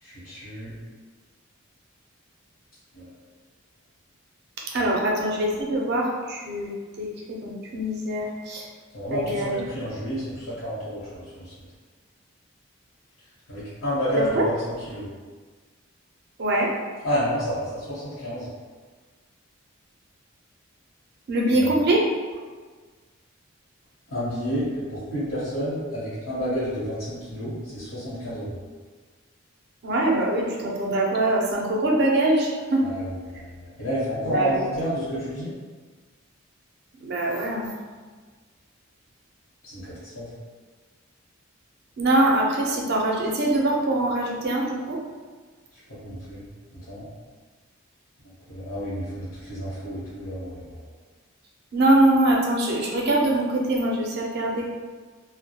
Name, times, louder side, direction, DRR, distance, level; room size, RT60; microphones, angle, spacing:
voice 1, 0.0-0.7 2.9-3.1 4.8-4.9 8.9-11.5 13.5-15.1 17.0-18.5 21.6-21.7 24.1-28.6 32.8-35.6 39.6-40.3 45.9-46.4 46.7-47.1 48.5-50.8, equal, 70° left, -13 dB, 0.8 m, -30 dB
voice 2, 4.7-8.7 9.1-9.6 14.3-14.4 16.4-16.7 21.3-22.1 29.8-32.9 34.2-34.6 37.0-37.7 42.0-45.0 51.7-54.7, right 1 dB, 50° right, -2 dB, 0.4 m, -23 dB
2.2 x 2.0 x 2.8 m, 1.4 s
head